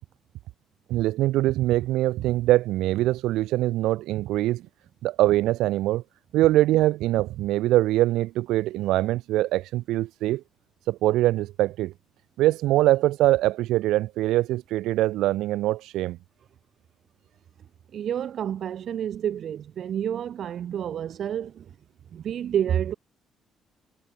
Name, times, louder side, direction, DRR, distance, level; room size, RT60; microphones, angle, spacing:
voice 1, 0.9-4.7 5.0-6.0 6.3-10.4 10.9-11.9 12.4-16.2, right 16 dB, 90° right, 2.1 m, -23 dB
voice 2, 17.9-21.7 22.1-22.9, right 9 dB, 60° right, 0.6 m, -29 dB
cardioid pair, 105°, 0 cm